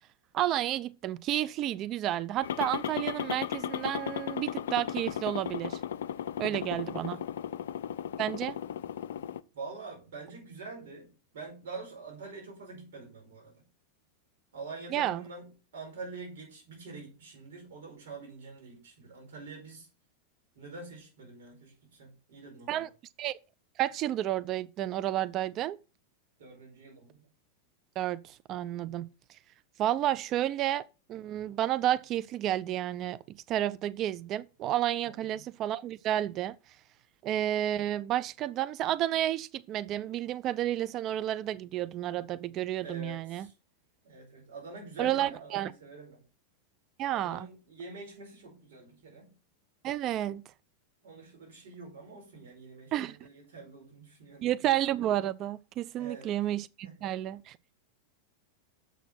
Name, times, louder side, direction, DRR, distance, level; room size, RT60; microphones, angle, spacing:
voice 1, 0.3-5.8 6.4-7.2 8.2-8.6 14.9-15.2 22.7-22.9 23.2-23.3 23.8-25.8 28.0-29.1 29.8-30.8 31.1-36.6 37.2-43.5 45.0-45.7 47.0-47.5 49.8-50.4 52.9-53.2 54.4-57.6, right 12 dB, 35° right, 0.3 m, -31 dB
sound 1, 2.4-9.4, left 9 dB, 60° left, 0.4 m, -36 dB
voice 2, 6.5-6.8 9.5-13.6 14.5-19.9 20.5-22.9 26.4-27.3 35.0-35.4 42.8-43.5 44.0-46.2 47.1-49.3 51.0-54.7 55.9-56.3 56.8-57.2, right 3 dB, 55° right, 4.8 m, -46 dB
7.0 x 6.1 x 5.7 m
figure-of-eight pair, 90°, 0 cm